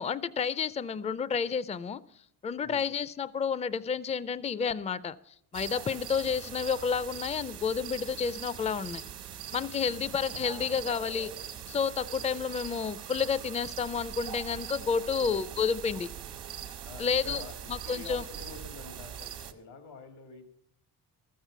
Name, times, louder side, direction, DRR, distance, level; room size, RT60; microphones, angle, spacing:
voice 1, 0.0-2.0 2.4-9.0 9.5-11.3 11.7-16.1 17.0-17.4 17.7-18.2, left 6 dB, 15° left, 18 dB, 0.4 m, -30 dB
voice 2, 2.6-3.0 5.9-6.1 9.8-9.9 15.2-15.4 16.8-20.5, left 4 dB, 80° left, 8 dB, 1.8 m, -47 dB
sound 1, 5.5-19.5, right 9 dB, 80° right, 1.4 m, -42 dB
14.0 x 7.5 x 6.9 m, 0.72 s
cardioid pair, 85°, 40 cm